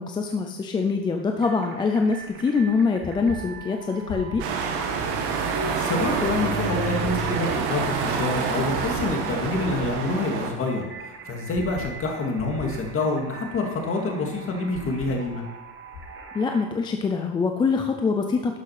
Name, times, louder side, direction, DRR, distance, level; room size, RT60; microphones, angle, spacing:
voice 1, 0.0-4.4 16.3-18.6, left 4 dB, 10° left, 4 dB, 0.3 m, -24 dB
sound 1, 1.4-16.7, right 5 dB, 25° right, 1.1 m, -43 dB
sound 2, 2.2-16.2, left 5 dB, 50° left, 2.4 m, -43 dB
sound 3, 4.4-10.5, right 5 dB, 70° right, 2.0 m, -27 dB
voice 2, 5.7-10.8 11.3-15.4, left 2 dB, 30° left, 1 dB, 2.0 m, -27 dB
11.5 x 6.4 x 5.7 m, 1.0 s
cardioid pair, 165°, 42 cm